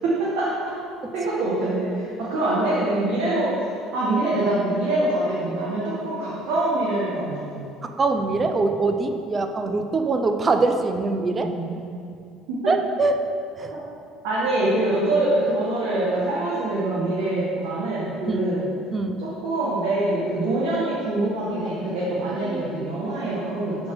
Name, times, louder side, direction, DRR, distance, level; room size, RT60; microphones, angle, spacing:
voice 1, 0.0-0.5 1.1-3.5 3.9-7.7 11.3-11.7 12.5-12.6 13.7-13.8 14.2-18.7 19.4-23.9, right 2 dB, 80° right, -8 dB, 1.5 m, -24 dB
voice 2, 7.8-11.5 12.7-13.2 13.6-13.7 18.3-18.5 18.9-19.2 21.6-21.7 22.4-22.9, right 3 dB, 25° right, 7 dB, 0.5 m, -23 dB
7.2 x 4.4 x 4.8 m, 2.4 s
supercardioid pair, 105°, 0 cm